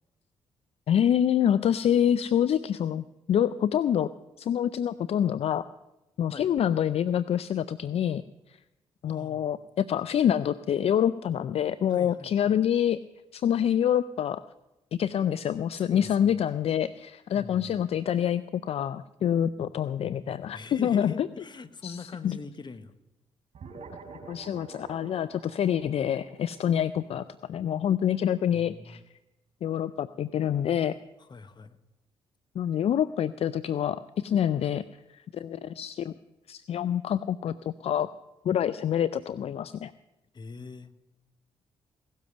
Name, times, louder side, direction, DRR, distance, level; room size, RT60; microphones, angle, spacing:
voice 1, 0.9-4.1 4.4-5.6 6.2-8.2 8.5-8.6 9.0-13.0 13.3-14.4 14.9-21.3 21.8-22.4 24.3-29.0 29.6-31.0 32.6-34.8 35.1-36.1 36.5-38.1 38.4-39.9, left 9 dB, 55° left, 15 dB, 0.4 m, -26 dB
voice 2, 9.1-9.4 11.9-12.6 15.8-16.3 17.3-17.8 20.5-22.9 28.5-29.0 31.2-31.8 40.3-40.9, left 4 dB, 40° left, 12 dB, 1.0 m, -43 dB
sound 1, 23.5-28.4, right 4 dB, 60° right, 3.1 m, -48 dB
17.5 x 7.4 x 6.8 m, 0.98 s
supercardioid pair, 50°, 12 cm